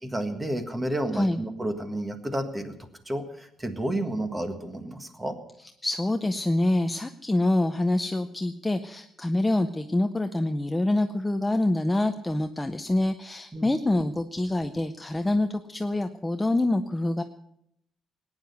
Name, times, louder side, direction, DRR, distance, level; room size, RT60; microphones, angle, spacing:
voice 1, 0.0-2.8 3.0-5.4 13.5-13.7, right 1 dB, 10° right, 7 dB, 1.6 m, -31 dB
voice 2, 5.8-17.2, left 1 dB, 10° left, 7 dB, 0.6 m, -26 dB
19.5 x 9.7 x 6.8 m, 0.75 s
cardioid pair, 160°, 0 cm